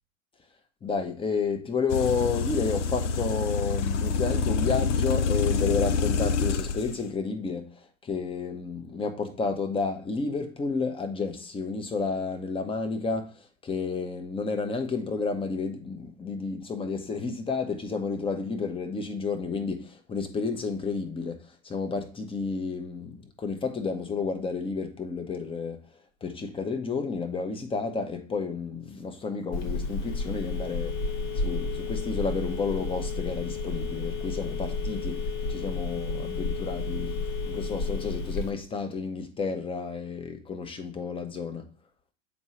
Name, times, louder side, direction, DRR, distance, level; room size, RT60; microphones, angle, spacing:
voice 1, 0.8-25.8 26.2-31.0 31.3-37.2 37.5-41.7, left 4 dB, 15° left, 1.0 m, -31 dB
sound 1, 1.9-6.9, left 5 dB, 65° left, 0.7 m, -26 dB
Telephone, 29.5-38.5, left 3 dB, 45° left, 1.5 m, -31 dB
7.2 x 4.6 x 3.1 m
hypercardioid pair, 95°, 39 cm